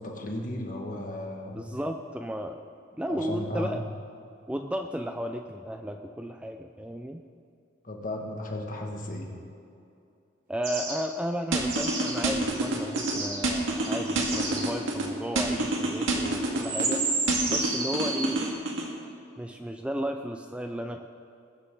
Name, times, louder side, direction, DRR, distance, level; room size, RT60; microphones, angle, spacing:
voice 1, 0.0-1.7 3.1-3.8 7.8-9.3, left 1 dB, 45° left, 1 dB, 1.8 m, -35 dB
voice 2, 1.5-2.6 3.0-3.8 4.5-7.2 10.5-18.4 19.4-21.1, equal, 5° right, 5 dB, 0.4 m, -34 dB
sound 1, 10.6-10.9 11.7-12.1 12.5-14.6 16.0-16.1 16.5-18.2, right 3 dB, 50° right, 3.8 m, -31 dB
sound 2, 11.5-13.1 13.4-15.1 15.4-17.0 17.3-18.9, right 2 dB, 85° right, 2.0 m, -27 dB
21.0 x 10.0 x 3.8 m, 2.6 s
head